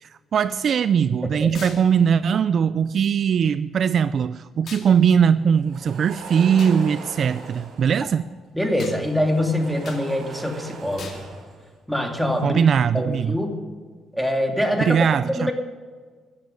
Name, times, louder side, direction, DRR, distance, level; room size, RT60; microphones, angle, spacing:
voice 1, 0.0-8.3 12.4-13.4 14.9-15.5, right 7 dB, 55° right, 14 dB, 0.4 m, -20 dB
sound 1, 1.5-1.8 4.7-4.9 6.6-6.8 8.8-9.0 9.8-10.0 11.0-11.2, left 6 dB, 60° left, 2.4 m, -39 dB
sound 2, 5.5-8.1 8.8-11.7 12.0-12.4, right 3 dB, 75° right, 5.5 m, -40 dB
voice 2, 8.5-11.2 11.9-12.6 12.9-13.6 14.1-15.0 15.2-15.5, left 1 dB, ahead, 2 dB, 2.6 m, -24 dB
14.0 x 9.2 x 9.7 m, 1.5 s
cardioid pair, 90°, 0 cm